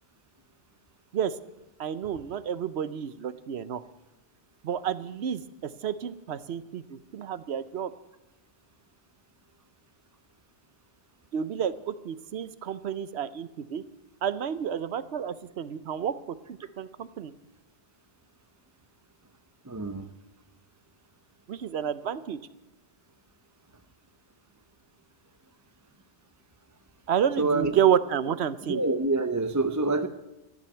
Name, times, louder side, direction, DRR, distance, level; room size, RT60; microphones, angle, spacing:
voice 1, 1.8-3.8 4.6-7.9 11.3-13.8 14.2-16.1 16.5-17.3 21.5-22.4 27.1-28.8, right 9 dB, 65° right, 15 dB, 1.0 m, -30 dB
voice 2, 19.6-20.1 27.4-27.8 28.7-30.1, right 3 dB, 20° right, 9 dB, 0.6 m, -26 dB
14.0 x 11.5 x 8.3 m, 1.0 s
omnidirectional pair, 1.2 m